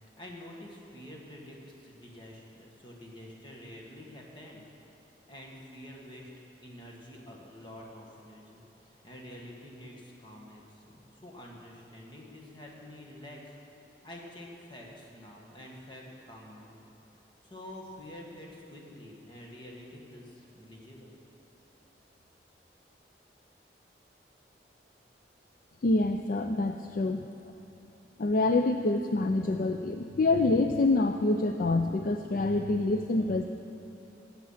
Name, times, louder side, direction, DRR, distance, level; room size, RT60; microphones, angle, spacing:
voice 1, 0.2-4.6 5.3-6.3 6.6-13.6 14.0-16.8 17.4-21.2, left 1 dB, 25° left, -2 dB, 1.7 m, -48 dB
voice 2, 25.8-27.3 28.2-33.5, left 2 dB, 50° left, 6 dB, 0.4 m, -26 dB
15.5 x 8.0 x 5.7 m, 2.8 s
head